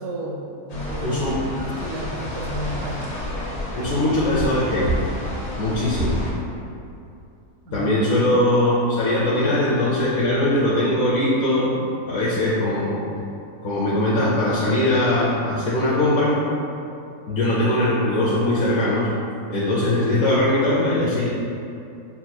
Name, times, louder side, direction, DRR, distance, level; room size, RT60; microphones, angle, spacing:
voice 1, 0.0-3.1 7.6-7.9, equal, 90° right, 0 dB, 1.1 m, -32 dB
sound 1, 0.7-6.3, equal, 80° left, 1.4 m, -29 dB
voice 2, 1.0-1.3 3.7-4.9 5.6-6.3 7.7-11.8 12.1-13.0 13.6-16.4 17.3-19.1 19.5-21.3, left 1 dB, 60° left, -8 dB, 0.8 m, -21 dB
5.8 x 2.9 x 2.2 m, 2.6 s
omnidirectional pair, 1.5 m